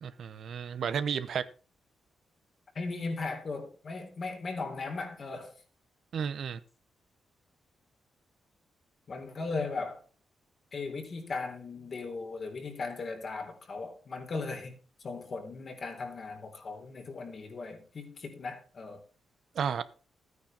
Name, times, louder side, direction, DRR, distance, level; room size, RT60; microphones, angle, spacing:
voice 1, 0.0-1.4 6.1-6.6 19.5-19.8, right 7 dB, 70° right, 0.9 m, -32 dB
voice 2, 2.8-5.5 9.1-10.0 10.7-19.0, left 3 dB, 50° left, 3.6 m, -37 dB
13.5 x 9.5 x 4.3 m
cardioid pair, 85°, 0 cm